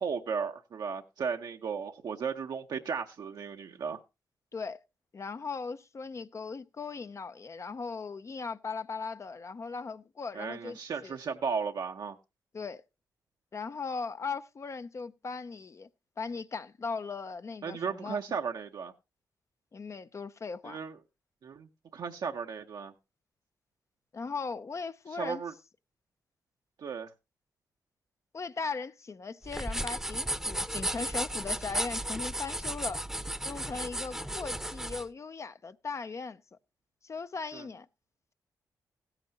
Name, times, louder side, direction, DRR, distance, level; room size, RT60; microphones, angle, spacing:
voice 1, 0.0-4.0 10.3-12.2 17.6-18.9 20.6-21.0 21.4-22.9 25.1-25.5 26.8-27.1 37.5-37.6, right 6 dB, 70° right, 0.7 m, -35 dB
voice 2, 5.1-10.8 11.0-11.2 12.5-12.8 13.5-15.9 16.2-18.2 19.7-20.8 24.1-25.4 28.3-33.0 33.4-36.4 37.0-37.9, left 4 dB, 40° left, 0.5 m, -38 dB
sound 1, 29.4-35.1, right 1 dB, 5° right, 0.7 m, -34 dB
15.5 x 8.9 x 2.8 m
cardioid pair, 65°, 7 cm